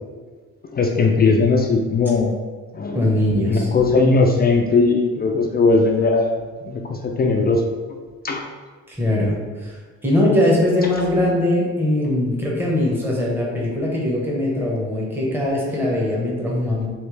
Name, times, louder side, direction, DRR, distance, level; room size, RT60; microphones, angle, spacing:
voice 1, 0.7-2.3 2.7-3.0 3.5-6.3 6.6-7.6 8.2-8.5, left 3 dB, 30° left, 2 dB, 0.4 m, -18 dB
voice 2, 2.9-3.7 8.9-9.8 10.0-16.9, left 1 dB, 5° right, -4 dB, 0.9 m, -21 dB
3.2 x 3.0 x 3.2 m, 1.4 s
cardioid pair, 90°, 30 cm